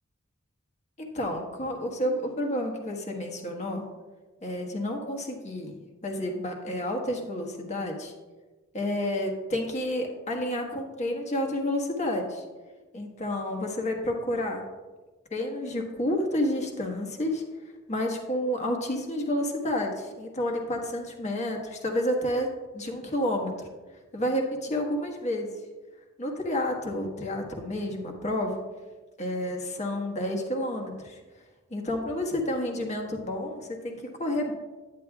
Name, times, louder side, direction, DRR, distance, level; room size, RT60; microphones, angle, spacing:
voice 1, 1.0-3.9 4.4-8.1 8.7-12.4 12.9-14.6 15.3-17.4 17.9-22.5 22.7-23.6 24.1-25.5 26.2-28.6 29.2-31.2 31.7-34.5, left 1 dB, 35° left, 1 dB, 1.3 m, -30 dB
10.0 x 9.7 x 2.3 m, 1.3 s
head